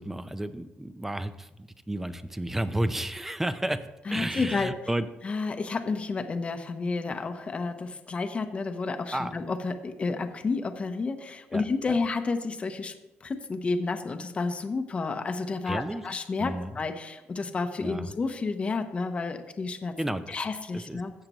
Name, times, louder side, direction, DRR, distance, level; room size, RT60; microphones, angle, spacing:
voice 1, 0.0-5.1 9.1-9.3 11.5-11.6 15.7-16.0 16.4-16.7 17.8-18.1 20.0-20.2 20.7-21.0, right 1 dB, 10° right, 12 dB, 0.6 m, -32 dB
voice 2, 4.1-4.7 5.2-12.9 13.2-20.0 20.3-21.1, left 4 dB, 30° left, 7 dB, 0.8 m, -31 dB
16.0 x 6.6 x 3.0 m, 0.97 s
cardioid pair, 115°, 4 cm